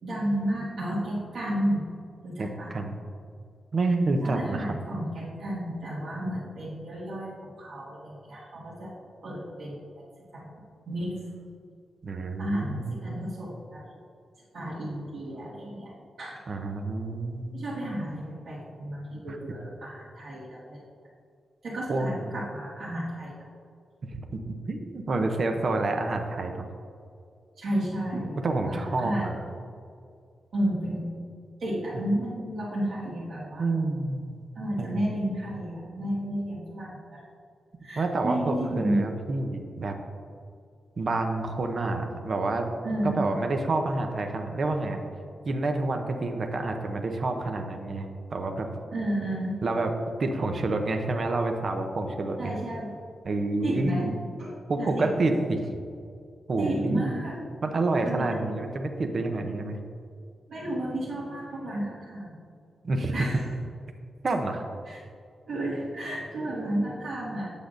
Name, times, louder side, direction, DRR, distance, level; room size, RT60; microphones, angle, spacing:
voice 1, 0.0-1.8 2.2-2.7 4.2-8.9 9.2-10.0 10.3-10.5 10.9-11.2 12.4-13.8 14.5-16.4 17.5-20.8 21.6-23.3 27.6-29.3 30.5-31.1 31.6-34.0 34.5-37.2 37.8-39.0 42.8-43.2 48.9-49.6 52.4-53.0 53.6-54.1 54.4-55.3 56.6-57.3 58.0-58.4 60.5-62.4 63.1-63.5 64.9-65.0 65.5-67.5, right 1 dB, 65° right, -10 dB, 1.7 m, -32 dB
voice 2, 2.4-3.0 3.7-4.7 12.0-13.1 16.5-17.6 19.3-19.4 21.9-22.2 24.1-24.4 24.7-26.7 28.4-29.3 31.9-32.0 33.6-34.5 34.8-35.0 38.0-39.9 41.0-42.7 43.0-45.0 45.4-48.7 49.6-49.9 50.2-52.5 53.2-54.1 54.7-55.6 56.5-57.2 57.6-59.8 62.8-63.1 64.2-64.7, right 2 dB, 40° right, 5 dB, 0.6 m, -28 dB
8.0 x 6.9 x 2.5 m, 2.3 s
wide cardioid pair, 160°, 0 cm